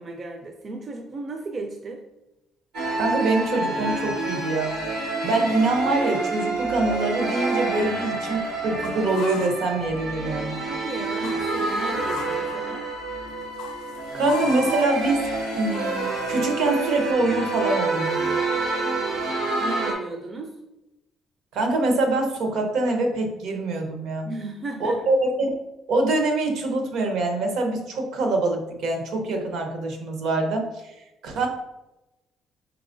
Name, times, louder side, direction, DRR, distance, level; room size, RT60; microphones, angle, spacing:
voice 1, 0.0-2.0 10.7-12.9 19.6-20.5 24.2-25.0, right 3 dB, 35° right, 3 dB, 0.4 m, -35 dB
sound 1, 2.7-19.9, right 3 dB, 90° right, 1.4 m, -28 dB
voice 2, 2.9-4.8 5.2-10.6 14.1-15.3 15.5-18.2 21.5-24.3 24.8-25.6 25.9-31.5, right 2 dB, 75° right, 3 dB, 0.9 m, -24 dB
sound 2, 7.2-10.3 10.6-17.1, left 7 dB, 85° left, 0.3 m, -40 dB
4.6 x 3.5 x 2.6 m, 0.96 s
cardioid pair, 105°, 0 cm